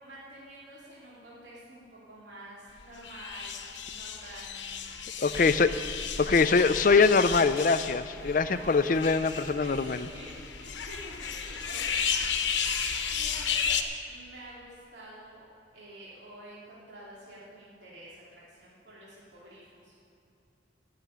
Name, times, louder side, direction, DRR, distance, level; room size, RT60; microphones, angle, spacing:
voice 1, 0.0-4.8 5.2-5.8 6.2-7.1 8.1-12.0 13.1-13.7 14.1-15.4 15.7-19.9, right 1 dB, 70° right, -8 dB, 2.8 m, -48 dB
sound 1, 3.0-13.8, left 7 dB, 75° left, 1.0 m, -33 dB
voice 2, 5.2-5.7 6.3-10.1, left 4 dB, 45° left, 12 dB, 0.5 m, -23 dB
15.0 x 6.9 x 8.7 m, 2.8 s
head